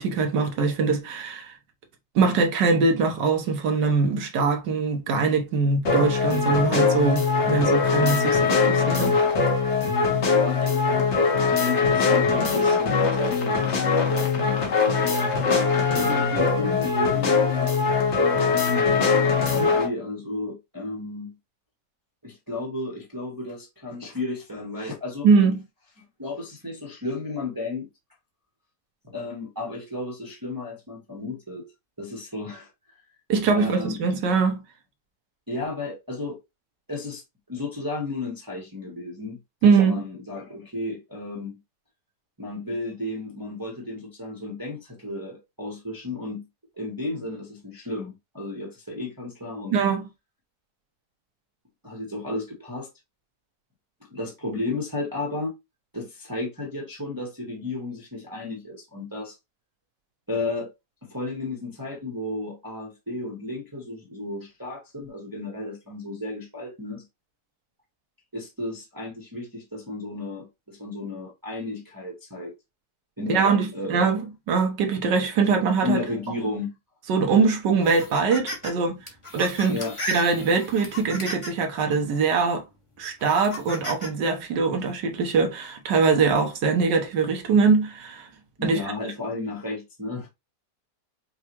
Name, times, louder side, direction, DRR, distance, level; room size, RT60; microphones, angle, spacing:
voice 1, 0.0-1.5 2.1-9.2 25.2-25.6 33.3-34.6 39.6-40.0 49.7-50.0 73.3-76.0 77.1-79.0 79.3-79.8 80.1-82.6 83.0-88.3 88.6-88.8, right 4 dB, 85° right, 1.6 m, -22 dB
sound 1, 5.9-19.9, left 5 dB, 45° left, 1.2 m, -22 dB
voice 2, 10.3-15.1 15.9-17.8 18.2-21.3 22.2-25.3 26.2-27.9 29.0-31.7 32.0-32.7 33.5-34.0 35.5-36.4 36.9-37.2 37.5-41.6 42.4-46.5 46.8-49.8 51.8-52.9 54.1-55.5 55.9-59.3 60.3-60.7 61.0-67.0 68.3-72.5 73.2-74.1 75.8-76.8 79.7-79.9 88.6-90.3, left 2 dB, 15° right, 0.8 m, -33 dB
sound 2, 77.8-78.7 79.1-81.7 82.3-82.4 83.2-84.1, left 1 dB, 20° left, 1.0 m, -35 dB
5.5 x 2.4 x 3.0 m
omnidirectional pair, 1.8 m